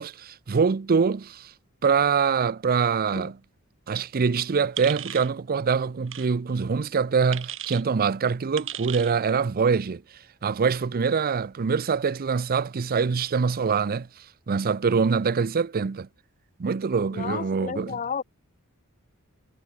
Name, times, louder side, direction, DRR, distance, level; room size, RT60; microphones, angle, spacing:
voice 1, 0.0-1.5 1.8-3.4 3.9-10.0 10.4-14.1 14.5-16.1 16.6-18.0, right 5 dB, 40° right, 0.5 m, -24 dB
sound 1, 4.8-5.3 6.1-6.3 7.3-7.8 8.6-9.1, right 11 dB, 60° right, 5.4 m, -35 dB
voice 2, 17.1-18.2, left 6 dB, 35° left, 0.6 m, -31 dB
head